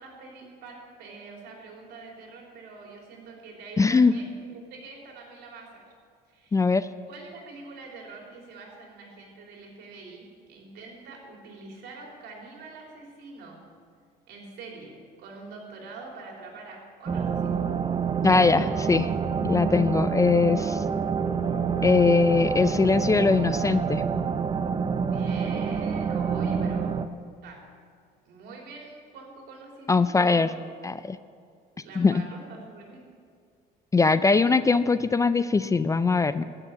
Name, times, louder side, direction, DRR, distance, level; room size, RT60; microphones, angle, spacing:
voice 1, 0.0-5.8 6.3-6.6 7.1-13.6 14.3-17.6 25.1-26.9 27.4-27.6 28.2-30.5 31.7-33.1, right 3 dB, 75° right, -1 dB, 3.4 m, -44 dB
voice 2, 3.8-4.1 6.5-6.9 18.2-19.1 19.4-20.8 21.8-24.0 29.9-30.5 30.8-31.2 32.0-32.2 33.9-36.4, left 4 dB, 20° left, 14 dB, 0.4 m, -21 dB
sound 1, 17.1-27.1, right 6 dB, 30° right, 0.6 m, -27 dB
14.5 x 6.7 x 8.5 m, 2.1 s
cardioid pair, 110°, 17 cm